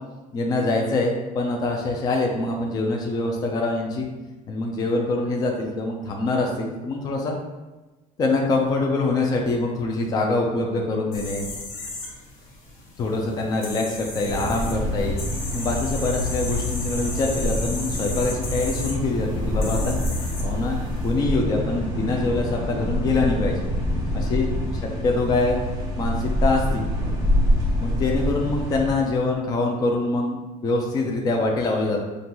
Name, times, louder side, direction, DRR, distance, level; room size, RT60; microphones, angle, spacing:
voice 1, 0.3-4.1 4.5-7.4 8.2-11.4 13.0-15.2 15.5-20.0 20.4-23.6 24.1-24.4 25.0-25.6 26.0-26.8 27.8-30.4 30.6-32.0, left 2 dB, 25° left, 0 dB, 0.5 m, -24 dB
sound 1, 11.1-21.1, left 3 dB, 80° left, 1.3 m, -36 dB
sound 2, 14.2-28.9, left 1 dB, 20° right, 1.0 m, -26 dB
5.2 x 2.5 x 3.0 m, 1.1 s
cardioid pair, 175°, 15 cm